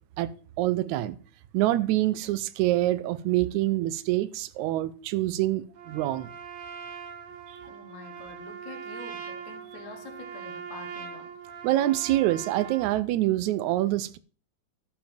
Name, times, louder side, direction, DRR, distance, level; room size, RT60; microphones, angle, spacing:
voice 1, 0.6-1.2 1.5-6.3 11.6-14.2, right 15 dB, 85° right, 2.0 m, -26 dB
Trumpet, 5.7-13.0, right 7 dB, 65° right, 1.0 m, -41 dB
voice 2, 7.7-11.4, left 5 dB, 80° left, 2.5 m, -46 dB
12.5 x 5.2 x 5.1 m
omnidirectional pair, 3.3 m